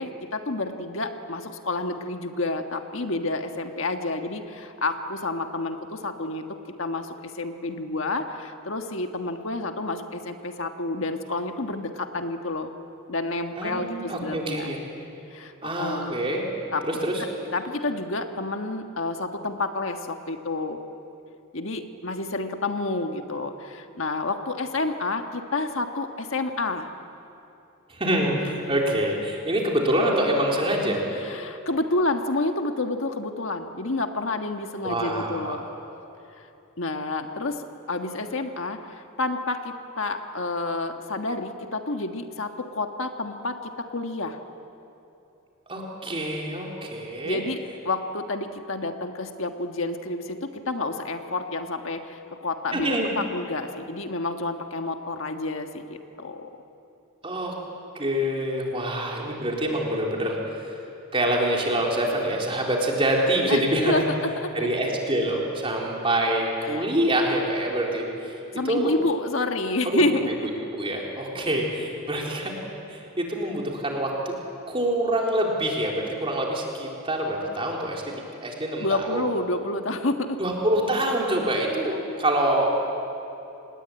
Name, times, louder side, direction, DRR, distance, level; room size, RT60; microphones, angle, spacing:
voice 1, 0.0-12.7 13.1-14.7 15.3-16.1 16.7-16.8 17.2-20.8 21.5-26.9 31.2-35.6 36.4-36.5 36.8-44.4 47.2-47.6 47.8-56.5 63.5-64.7 66.6-66.9 68.5-70.3 78.8-80.4, left 2 dB, 65° left, 5 dB, 1.5 m, -29 dB
voice 2, 13.6-14.8 15.6-16.4 16.9-17.2 27.9-31.0 34.8-35.8 45.7-47.4 52.7-53.1 57.2-57.5 57.9-60.4 60.6-60.8 61.1-64.0 64.5-68.4 68.7-69.0 69.8-70.0 70.3-70.4 70.7-72.5 72.9-74.3 74.7-79.2 80.4-82.7, right 1 dB, 25° right, -1 dB, 4.1 m, -26 dB
28.5 x 20.0 x 9.0 m, 2.9 s
head